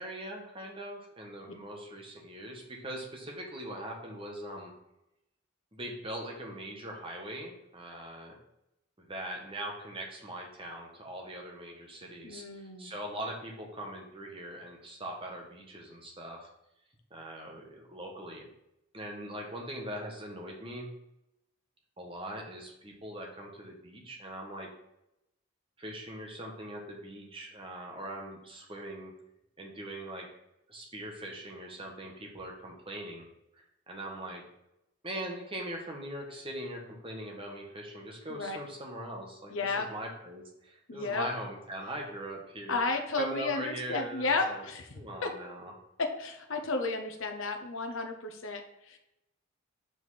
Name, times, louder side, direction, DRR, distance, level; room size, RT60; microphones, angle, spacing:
voice 1, 0.0-4.7 5.7-8.4 9.0-16.5 17.1-18.5 18.9-20.9 22.0-24.7 25.8-29.1 29.6-30.3 30.7-33.3 33.6-34.4 35.0-42.8 43.2-44.7 44.9-45.7, right 1 dB, 25° right, 0 dB, 1.3 m, -41 dB
voice 2, 12.2-12.9 38.3-38.6 39.5-39.9 40.9-41.2 42.7-44.9 45.2-45.3 46.0-49.0, left 3 dB, 60° left, 4 dB, 0.9 m, -33 dB
5.2 x 5.0 x 4.1 m, 0.85 s
head